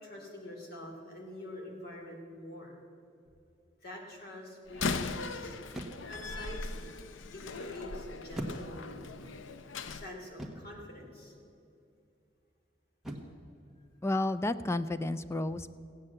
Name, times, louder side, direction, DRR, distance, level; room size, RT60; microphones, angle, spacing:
voice 1, 0.0-2.8 3.8-5.6 6.1-6.9 7.3-9.0 9.9-11.3, equal, 55° left, 0 dB, 3.0 m, -45 dB
sound 1, 3.3-3.6 5.7-6.3 8.4-9.1 10.4-10.8 13.0-13.5, right 1 dB, ahead, 1.4 m, -42 dB
Slam, 4.7-10.0, left 4 dB, 90° left, 0.6 m, -39 dB
voice 2, 14.0-15.7, left 2 dB, 15° left, 13 dB, 0.4 m, -31 dB
16.0 x 8.9 x 7.5 m, 2.7 s
head